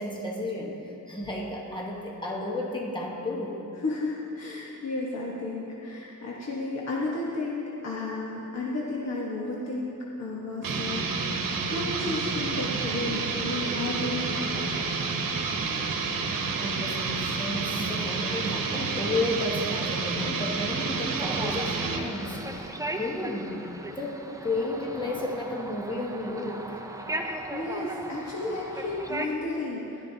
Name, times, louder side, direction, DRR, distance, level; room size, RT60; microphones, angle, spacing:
voice 1, 0.0-3.6 16.5-23.6 24.0-26.8, left 2 dB, 15° left, -2 dB, 1.2 m, -32 dB
voice 2, 3.8-11.4 11.7-14.7 27.2-30.0, left 2 dB, 55° left, -4 dB, 1.3 m, -33 dB
sound 1, 10.6-22.1, right 4 dB, 80° right, 1.0 m, -29 dB
sound 2, 21.2-29.3, right 2 dB, 10° right, 0.6 m, -37 dB
15.5 x 12.0 x 2.8 m, 3.0 s
wide cardioid pair, 120°, 33 cm